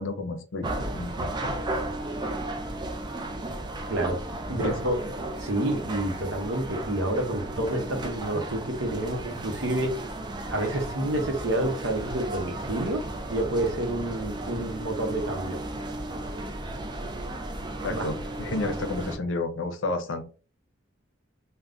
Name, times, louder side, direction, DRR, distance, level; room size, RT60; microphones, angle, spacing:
voice 1, 0.0-1.6 4.5-4.8 17.8-20.2, left 2 dB, 85° left, 7 dB, 0.6 m, -31 dB
sound 1, 0.6-19.2, right 1 dB, 25° right, 0.4 m, -34 dB
voice 2, 3.9-4.2 4.5-5.0 5.4-9.9 10.5-13.0 13.3-15.6 17.9-18.1, right 1 dB, 75° right, 5 dB, 0.7 m, -28 dB
3.4 x 2.2 x 2.5 m, 0.37 s
head